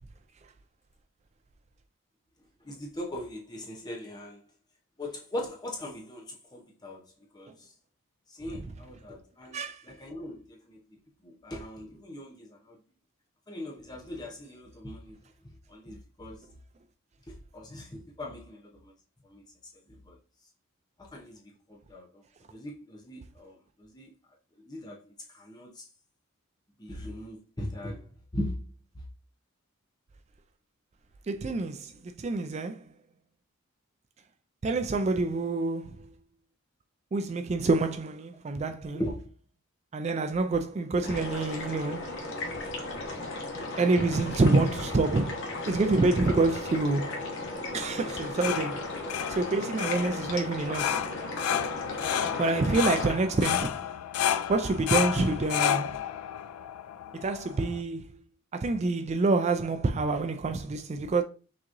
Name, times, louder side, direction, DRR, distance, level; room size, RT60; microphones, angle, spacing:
voice 1, 2.6-4.4 5.0-7.7 8.3-12.8 13.5-15.2 15.7-16.4 17.3-18.9 19.2-19.4 19.9-20.2 21.0-22.2 22.5-24.1 24.6-25.8 26.8-28.7 28.9-29.0 35.4-35.5 38.9-39.3 60.0-60.1, left 1 dB, 20° left, 0.7 m, -40 dB
voice 2, 31.3-32.8 34.6-36.0 37.1-39.0 39.9-42.1 43.8-47.3 47.7-48.9 49.3-51.0 52.4-53.7 54.5-56.0 57.1-58.1 58.5-61.2, right 3 dB, 30° right, 0.3 m, -27 dB
sound 1, 41.0-53.2, left 2 dB, 55° left, 1.3 m, -36 dB
sound 2, 48.1-57.8, left 9 dB, 85° left, 0.4 m, -31 dB
6.1 x 2.9 x 2.6 m
head